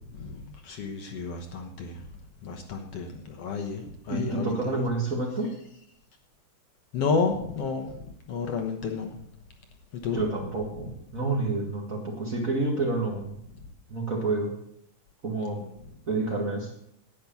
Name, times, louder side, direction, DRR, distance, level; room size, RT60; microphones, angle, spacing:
voice 1, 0.1-2.1 2.4-4.8 6.9-9.2 9.9-10.2 10.7-10.8 15.6-15.7, left 5 dB, 60° left, 3 dB, 2.0 m, -31 dB
voice 2, 4.1-5.5 10.1-13.4 13.9-14.5 15.2-15.6 16.1-16.7, right 2 dB, 30° right, 0 dB, 1.9 m, -29 dB
10.5 x 9.4 x 7.1 m, 0.72 s
omnidirectional pair, 3.4 m